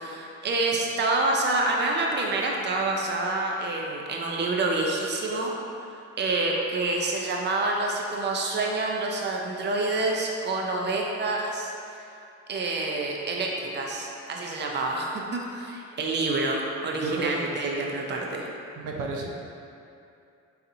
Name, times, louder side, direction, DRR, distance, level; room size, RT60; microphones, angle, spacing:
voice 1, 0.0-5.5 6.2-11.7 12.5-18.5, right 2 dB, 35° right, 0 dB, 0.6 m, -27 dB
voice 2, 17.0-17.4 18.8-19.3, right 3 dB, 80° right, -1 dB, 0.6 m, -31 dB
4.1 x 3.9 x 2.6 m, 2.6 s
cardioid pair, 90°, 30 cm